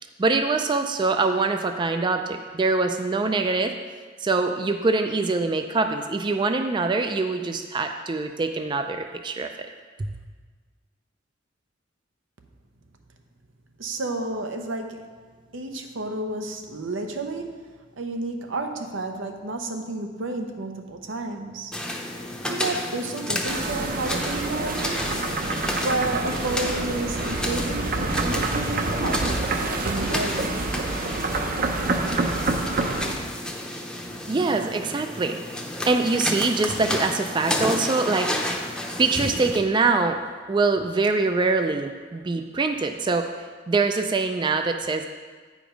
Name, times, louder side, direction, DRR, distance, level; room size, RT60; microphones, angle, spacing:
voice 1, 0.2-3.7 4.2-9.7 34.3-35.4 35.9-38.3 39.0-40.2 40.5-43.3 43.7-45.1, right 3 dB, 25° right, 6 dB, 0.4 m, -24 dB
voice 2, 13.8-15.1 15.5-17.6 18.0-21.7 22.4-25.0 25.7-30.5, right 2 dB, 85° right, 4 dB, 0.8 m, -31 dB
sound 1, 21.7-39.6, left 1 dB, 5° left, 0.7 m, -31 dB
sound 2, 23.4-33.1, right 2 dB, 50° right, 0.7 m, -27 dB
8.8 x 5.1 x 5.1 m, 1.5 s
head